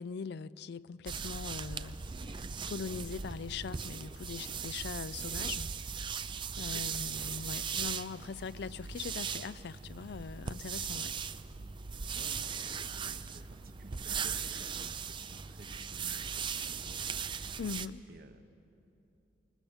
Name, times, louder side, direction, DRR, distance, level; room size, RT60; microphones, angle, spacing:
voice 1, 0.0-5.7 6.6-11.1 17.6-18.0, left 5 dB, 60° left, 0.4 m, -41 dB
sound 1, 1.1-17.9, right 6 dB, 25° right, 0.5 m, -38 dB
voice 2, 12.1-17.3 18.1-18.5, right 1 dB, 55° right, 1.0 m, -55 dB
21.5 x 19.5 x 7.2 m
head